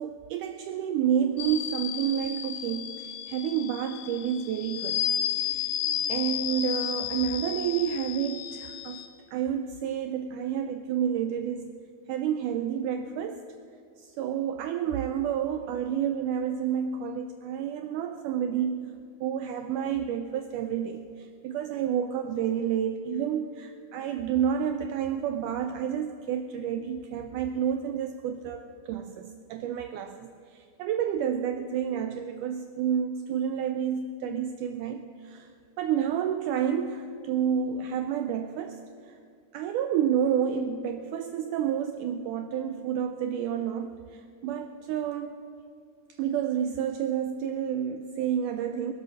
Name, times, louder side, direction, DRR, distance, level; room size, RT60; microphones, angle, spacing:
voice 1, 0.0-5.7 6.1-9.0 9.3-11.7 12.1-13.5 14.0-18.9 19.2-35.5 35.8-39.2 39.5-45.4 46.1-48.9, right 8 dB, 90° right, 7 dB, 1.8 m, -30 dB
sound 1, 1.4-9.1, left 11 dB, 80° left, 1.7 m, -32 dB
22.5 x 7.7 x 6.4 m, 2.3 s
omnidirectional pair, 4.3 m